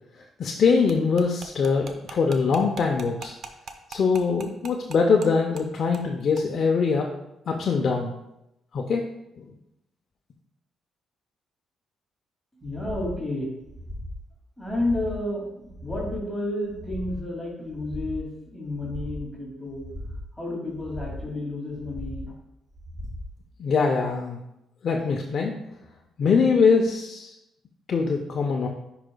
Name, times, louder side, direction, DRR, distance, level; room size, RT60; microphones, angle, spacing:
voice 1, 0.4-3.3 3.9-7.1 7.5-8.1 8.7-9.0 9.4-9.5 23.6-24.4 24.8-25.6 26.2-27.3 27.9-28.7, left 5 dB, 55° left, 1 dB, 0.6 m, -23 dB
sound 1, 0.9-5.3 5.6-5.7 5.9-6.1 6.4-6.5, right 5 dB, 60° right, 0.7 m, -40 dB
voice 2, 12.6-13.5 14.6-19.9 20.3-22.3, left 1 dB, ahead, -5 dB, 2.4 m, -31 dB
sound 2, 12.6-13.2 13.6-14.2 14.6-15.2 15.6-16.2 16.6-17.2 17.7-18.2 18.7-19.3 19.7-20.3 20.7-21.3 21.7-22.3 22.7-23.3 23.7-23.8, left 1 dB, 15° right, 1.2 m, -38 dB
10.0 x 4.9 x 2.3 m, 0.88 s
cardioid pair, 90°, 0 cm